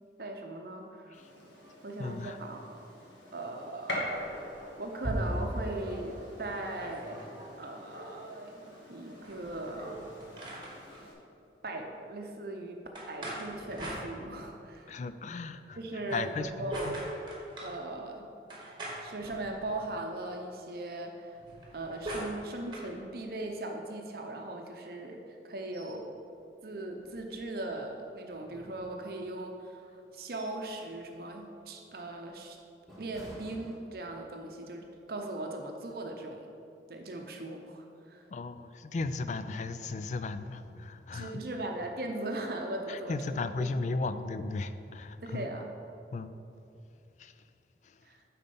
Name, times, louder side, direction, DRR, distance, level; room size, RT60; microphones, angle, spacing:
voice 1, 0.2-1.2 1.8-2.9 3.3-4.0 4.8-7.3 7.6-10.0 11.6-15.0 15.8-17.0 17.6-18.3 19.0-21.4 21.7-26.1 26.6-32.6 33.0-36.5 36.9-38.3 41.1-43.7 45.2-45.7 48.0-48.2, right 2 dB, 55° right, 3 dB, 0.7 m, -39 dB
Gunshot gunfire, 1.1-11.1, equal, 85° left, 1.8 m, -44 dB
voice 2, 2.0-2.4 14.9-15.8 16.1-17.0 38.3-41.4 42.9-45.5 46.1-46.3 47.2-47.3 47.8-48.0, left 3 dB, 40° left, 11 dB, 0.3 m, -36 dB
sound 1, 4.2-5.7 6.1-6.2 6.4-7.5 9.1-11.0 12.9-14.6 16.0-17.8 18.5-19.9 21.4-22.9, right 1 dB, 25° right, 1.4 m, -40 dB
sound 2, 25.7-26.0 26.4-26.5 27.0-27.8 28.3-29.3 29.9-30.7 31.1-31.3 31.9-34.3 34.7-34.9, equal, ahead, 2.0 m, -54 dB
9.4 x 4.2 x 5.4 m, 2.6 s
head